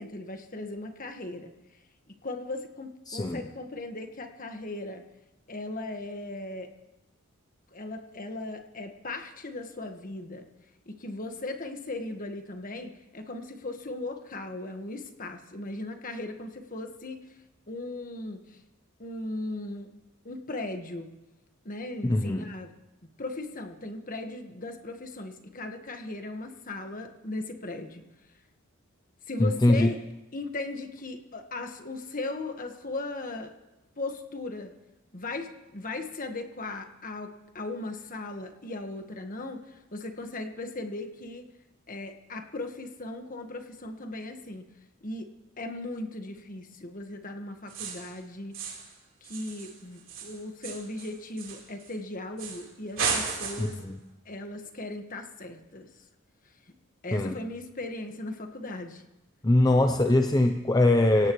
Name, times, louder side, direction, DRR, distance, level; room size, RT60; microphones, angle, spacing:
voice 1, 0.0-1.5 2.2-5.0 5.5-6.7 7.7-10.4 10.8-17.2 17.7-18.6 19.0-19.9 20.2-21.1 21.6-22.7 23.2-28.0 29.3-30.0 30.3-33.5 33.9-34.8 35.1-41.4 41.9-44.7 45.0-45.3 45.6-48.6 49.2-53.8 54.2-55.9 57.0-59.0, left 2 dB, 40° left, 5 dB, 1.5 m, -37 dB
voice 2, 3.1-3.4 22.0-22.5 29.4-29.9 53.6-54.0 57.1-57.3 59.4-61.3, left 1 dB, 20° left, 5 dB, 0.6 m, -22 dB
sound 1, 47.7-48.1 48.5-48.9 49.2-51.9 52.4-52.7 53.0-53.8, right 5 dB, 65° right, 3.8 m, -34 dB
26.5 x 17.0 x 3.1 m, 1.0 s
head